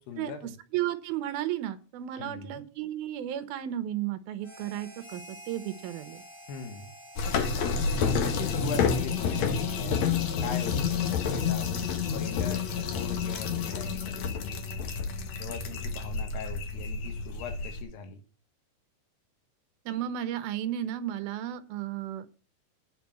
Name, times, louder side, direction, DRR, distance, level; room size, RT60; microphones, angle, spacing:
voice 1, 0.0-0.5 2.2-2.6 6.5-6.9 8.0-14.9 15.4-18.2, left 6 dB, 80° left, 7 dB, 3.6 m, -41 dB
voice 2, 0.7-6.2 19.9-22.3, right 12 dB, 75° right, 12 dB, 2.6 m, -33 dB
Harmonica, 4.4-10.4, equal, 15° left, 2.1 m, -49 dB
sound 1, 7.2-17.8, left 6 dB, 60° left, 1.9 m, -29 dB
9.6 x 5.9 x 8.4 m, 0.37 s
omnidirectional pair, 4.6 m